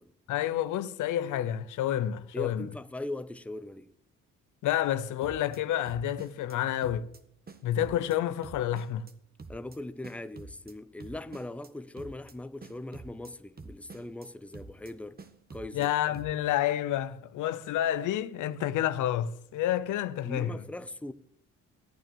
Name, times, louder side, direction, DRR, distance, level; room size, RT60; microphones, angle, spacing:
voice 1, 0.3-2.7 4.6-7.1 7.6-9.1 15.7-20.6, left 11 dB, 85° left, 0.8 m, -29 dB
voice 2, 2.3-3.9 9.5-15.2 15.5-16.2 20.2-21.1, left 2 dB, 5° left, 0.8 m, -40 dB
sound 1, 5.2-5.6 5.9-6.6 6.8-7.2 7.5-8.2 8.4-9.1 9.4-9.8 10.0-10.7 11.0-11.7 12.0-12.3 12.6-13.3 13.6-14.3 14.5-14.9 15.2-15.9 16.1-16.5, right 3 dB, 30° right, 1.5 m, -47 dB
14.5 x 9.1 x 6.8 m
cardioid pair, 90°, 30 cm